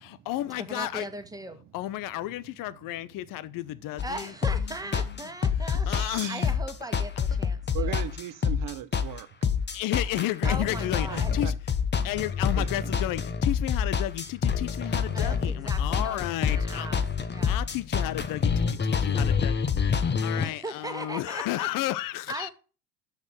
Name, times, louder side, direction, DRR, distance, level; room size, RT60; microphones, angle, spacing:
voice 1, 0.0-1.1 1.7-5.3 5.6-6.5 9.7-11.6 12.0-16.9 17.4-22.5, left 15 dB, 50° left, 0.8 m, -33 dB
voice 2, 0.6-1.6 4.0-5.9 6.3-8.0 10.4-11.4 15.1-17.0 17.3-17.6 20.4-21.7 22.3-22.5, right 2 dB, 10° right, 1.7 m, -38 dB
sound 1, 4.0-20.5, left 6 dB, 25° left, 1.3 m, -27 dB
voice 3, 5.8-6.5 7.7-9.3 10.4-10.5 11.1-11.5 12.0-12.1 12.6-12.9, right 12 dB, 50° right, 1.3 m, -38 dB
7.0 x 6.7 x 7.5 m
hypercardioid pair, 75°, 42 cm